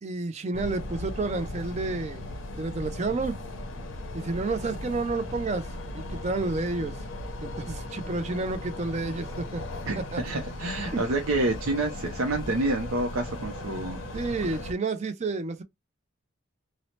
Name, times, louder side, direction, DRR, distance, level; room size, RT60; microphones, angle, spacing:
voice 1, 0.0-2.3 2.6-3.4 4.1-5.7 5.9-7.0 7.4-9.6 10.0-10.4 10.9-11.1 14.1-15.6, right 3 dB, 30° right, 0.4 m, -30 dB
sound 1, 0.5-14.7, left 1 dB, 75° left, 0.6 m, -37 dB
voice 2, 9.9-14.0, right 2 dB, 85° right, 0.5 m, -28 dB
2.8 x 2.0 x 2.9 m
head